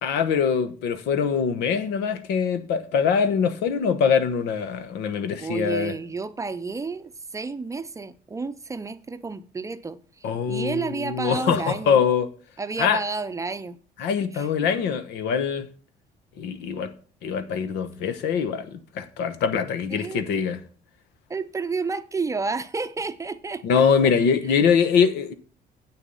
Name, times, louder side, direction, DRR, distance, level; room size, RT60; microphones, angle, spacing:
voice 1, 0.0-5.9 10.2-12.3 12.8-13.0 14.0-15.7 16.4-16.9 17.2-20.6 23.6-25.3, left 6 dB, 85° left, 1.1 m, -23 dB
voice 2, 5.4-12.0 12.6-13.8 14.3-14.5 19.9-20.3 21.3-24.1, right 4 dB, 20° right, 0.6 m, -31 dB
8.3 x 6.9 x 5.5 m
cardioid pair, 110°, 17 cm